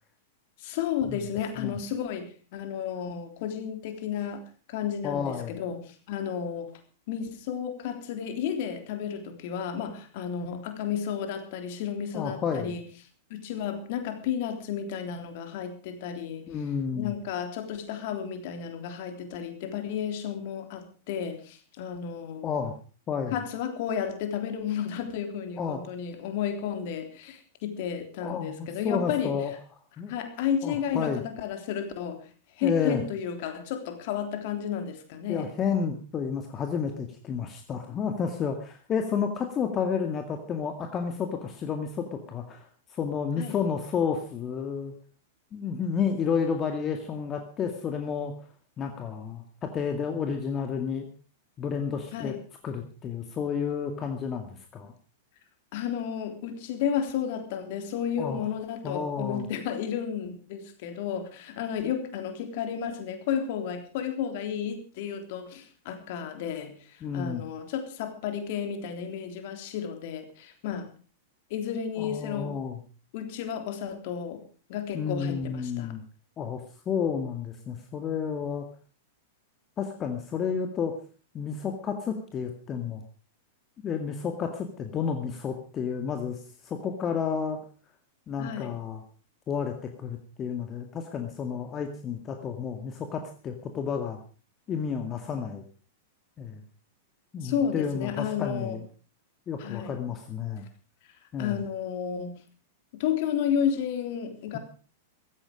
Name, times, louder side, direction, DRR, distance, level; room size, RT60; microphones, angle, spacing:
voice 1, 0.6-4.4 4.7-6.7 7.1-12.8 13.3-16.5 16.9-22.5 23.3-29.4 30.1-32.3 32.6-35.5 43.4-43.6 52.1-52.4 55.7-70.9 71.5-72.6 73.1-74.4 74.7-76.0 88.4-88.8 97.4-98.8 99.6-100.0 101.4-102.4 102.9-104.6, left 8 dB, 50° left, 7 dB, 3.4 m, -32 dB
voice 2, 5.0-5.6 12.1-12.7 16.5-17.1 22.4-22.8 23.1-23.4 25.6-25.8 28.2-29.5 30.0-30.1 30.6-31.2 32.6-33.0 35.3-44.9 45.5-48.3 48.8-51.1 51.6-52.3 52.6-54.9 58.2-58.5 58.8-59.5 67.0-67.4 72.0-72.8 74.9-76.0 76.4-78.7 79.8-80.9 81.3-83.0 83.8-87.6 88.3-89.0 89.5-94.2 94.7-95.6 96.4-96.6 97.3-98.8 99.5-100.6 101.3-101.6, left 6 dB, 25° left, 5 dB, 2.1 m, -31 dB
16.0 x 14.0 x 5.2 m, 0.39 s
figure-of-eight pair, 100°, 0 cm